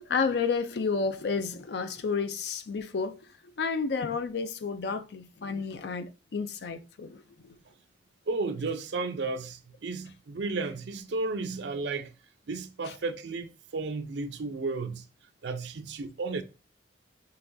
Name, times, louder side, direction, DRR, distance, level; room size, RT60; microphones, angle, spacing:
voice 1, 0.0-3.3 3.6-7.6 12.9-13.0, left 5 dB, 65° left, 0.4 m, -31 dB
voice 2, 8.3-12.1 12.5-15.0 15.4-16.4, right 3 dB, 70° right, 0.5 m, -33 dB
5.6 x 2.9 x 2.6 m
head